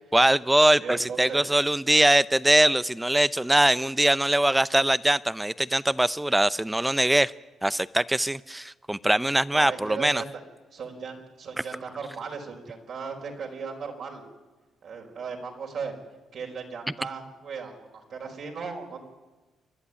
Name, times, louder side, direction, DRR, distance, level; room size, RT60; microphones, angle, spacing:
voice 1, 0.1-7.3 7.6-10.2, right 1 dB, 10° right, 18 dB, 0.6 m, -22 dB
voice 2, 0.8-1.4 9.5-10.2 10.7-14.2 14.8-15.9 16.3-19.0, right 5 dB, 60° right, 1 dB, 4.7 m, -37 dB
27.5 x 11.5 x 9.8 m, 1.2 s
cardioid pair, 90°, 0 cm